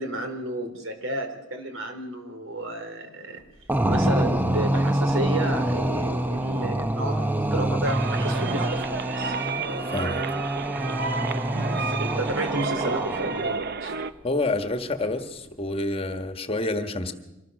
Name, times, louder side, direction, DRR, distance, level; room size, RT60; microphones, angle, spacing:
voice 1, 0.0-3.5 3.9-9.3 11.6-13.9, right 1 dB, 80° right, 5 dB, 3.9 m, -32 dB
sound 1, 3.7-13.6, right 1 dB, 10° right, 0.7 m, -26 dB
sound 2, 7.8-14.1, right 4 dB, 50° right, 0.7 m, -31 dB
voice 2, 9.9-10.2 14.2-17.1, left 2 dB, 30° left, 7 dB, 1.5 m, -28 dB
25.5 x 19.0 x 6.4 m, 1.0 s
head